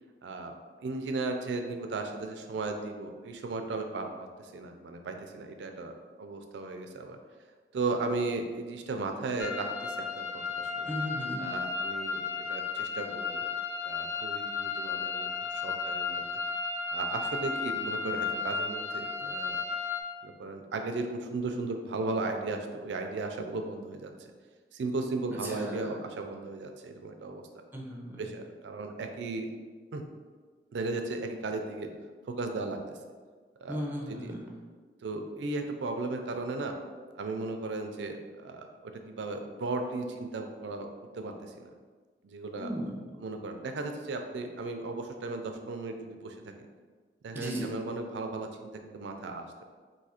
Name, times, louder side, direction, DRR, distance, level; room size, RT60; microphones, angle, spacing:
voice 1, 0.2-0.6 0.8-4.1 4.4-7.2 7.7-10.9 11.4-13.4 13.8-16.3 16.9-19.6 20.2-24.3 24.7-27.4 28.2-29.5 29.9-30.0 30.7-31.9 32.3-33.0 33.6-33.8 34.1-34.3 35.0-36.8 37.2-40.9 41.1-41.7 42.2-42.7 43.2-46.7 47.2-49.4, right 3 dB, 80° right, 5 dB, 0.4 m, -36 dB
sound 1, 9.4-20.0, left 5 dB, 70° left, 0.4 m, -34 dB
voice 2, 10.9-11.4 25.4-26.0 27.7-28.2 33.7-34.6 42.6-43.2 47.3-47.7, equal, 10° right, -2 dB, 0.5 m, -36 dB
2.7 x 2.4 x 4.2 m, 1.5 s
head